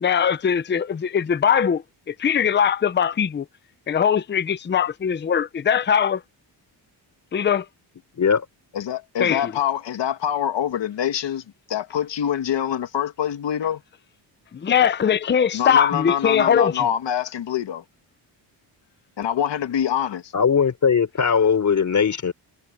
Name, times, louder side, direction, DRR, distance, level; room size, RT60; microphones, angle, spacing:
voice 1, 0.0-3.5 3.9-6.2 7.3-7.7 9.2-9.5 14.5-16.9, left 8 dB, 25° left, 0.6 m, -21 dB
voice 2, 8.7-13.8 15.5-17.8 19.2-20.3, left 9 dB, 80° left, 2.1 m, -25 dB
voice 3, 20.3-22.3, left 6 dB, 45° left, 4.0 m, -19 dB
wide cardioid pair, 170°, 43 cm